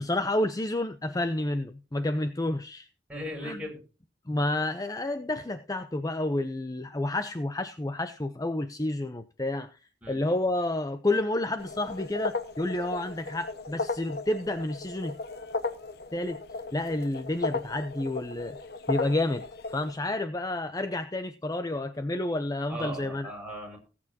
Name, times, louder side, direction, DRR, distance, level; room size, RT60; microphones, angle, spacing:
voice 1, 0.0-2.9 3.4-3.6 4.3-9.8 10.1-15.2 16.1-16.4 16.7-18.6 18.9-19.4 19.7-23.3, left 1 dB, 20° left, 0.6 m, -30 dB
voice 2, 3.1-3.8 10.0-10.2 22.7-23.8, equal, 10° right, 5.8 m, -38 dB
sound 1, 11.6-19.9, left 3 dB, 60° left, 1.3 m, -36 dB
19.0 x 8.7 x 2.8 m
head